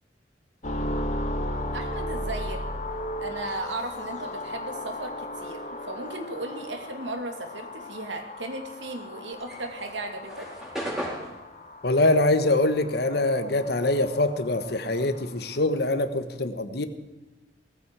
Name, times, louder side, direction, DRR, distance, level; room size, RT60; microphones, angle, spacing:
sound 1, 0.6-15.7, left 1 dB, 40° left, 1.5 m, -36 dB
voice 1, 1.7-2.6 3.2-10.5, right 2 dB, 90° right, 5 dB, 2.5 m, -36 dB
sound 2, 9.3-14.0 14.3-16.3, equal, 5° right, 4.5 m, -38 dB
voice 2, 11.8-16.9, left 2 dB, 60° left, 10 dB, 1.2 m, -24 dB
17.5 x 14.5 x 4.8 m, 1.1 s
head